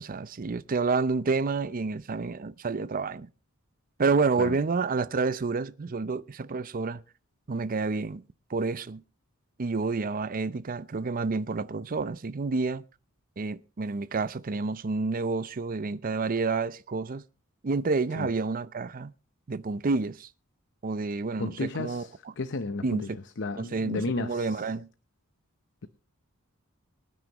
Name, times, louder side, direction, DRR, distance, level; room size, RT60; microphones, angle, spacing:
voice 1, 0.0-3.3 4.0-7.0 7.5-8.2 8.5-9.0 9.6-12.8 13.4-17.2 17.6-19.1 19.5-20.3 20.8-22.0 22.8-23.2 23.6-24.9, right 4 dB, 40° right, 0.5 m, -29 dB
voice 2, 21.4-24.7, left 3 dB, 55° left, 0.8 m, -33 dB
23.5 x 9.5 x 3.0 m
head